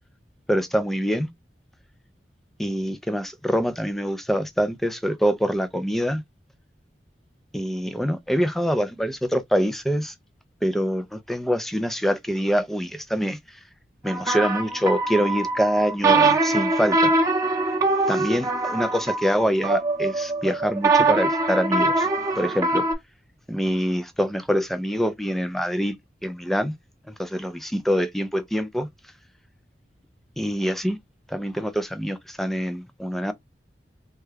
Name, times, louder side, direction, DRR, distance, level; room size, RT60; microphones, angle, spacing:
voice 1, 0.5-1.3 2.6-6.2 7.5-10.1 10.6-13.4 14.0-17.1 18.1-22.1 22.4-22.9 23.5-26.0 26.2-26.8 27.2-28.9 30.4-31.0 31.3-33.3, equal, ahead, 0.4 m, -25 dB
sound 1, 14.1-22.9, right 3 dB, 20° right, 0.7 m, -23 dB
3.4 x 2.2 x 3.3 m
head